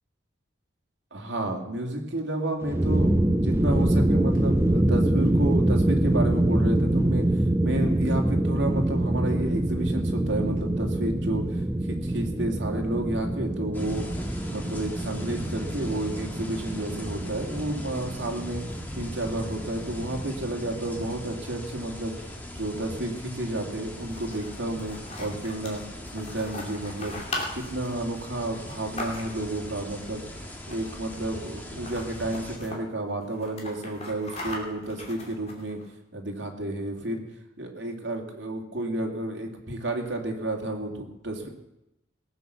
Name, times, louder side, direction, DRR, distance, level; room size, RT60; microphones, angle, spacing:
voice 1, 1.1-7.2 7.6-11.6 11.9-14.0 14.4-18.6 18.9-22.1 22.5-25.8 26.1-27.2 27.6-30.2 30.7-35.8 36.1-37.2 37.6-41.5, right 1 dB, 70° right, 2 dB, 2.4 m, -31 dB
sound 1, 2.6-21.4, right 1 dB, 15° right, 0.5 m, -25 dB
sound 2, 13.7-32.6, left 1 dB, 10° left, 1.6 m, -40 dB
sound 3, 23.9-29.6 30.6-31.1 31.4-31.5 31.7-32.8 33.2-35.9, left 2 dB, 35° left, 2.7 m, -39 dB
18.5 x 7.8 x 6.9 m, 0.88 s
head